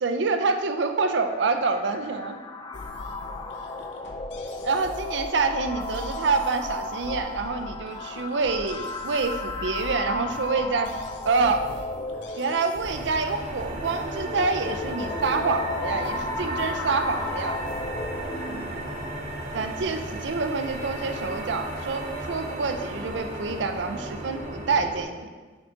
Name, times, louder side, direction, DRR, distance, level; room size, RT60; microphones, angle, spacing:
voice 1, 0.0-2.4 4.6-10.9 11.3-11.7 12.4-17.6 19.5-25.3, right 4 dB, 75° right, 6 dB, 0.5 m, -27 dB
sound 1, 1.1-19.0, left 3 dB, 25° left, 0.3 m, -35 dB
sound 2, 2.7-18.2, left 1 dB, 75° left, 0.7 m, -43 dB
sound 3, 12.8-25.0, right 1 dB, 45° right, 1.0 m, -34 dB
6.0 x 4.9 x 3.8 m, 1.4 s
head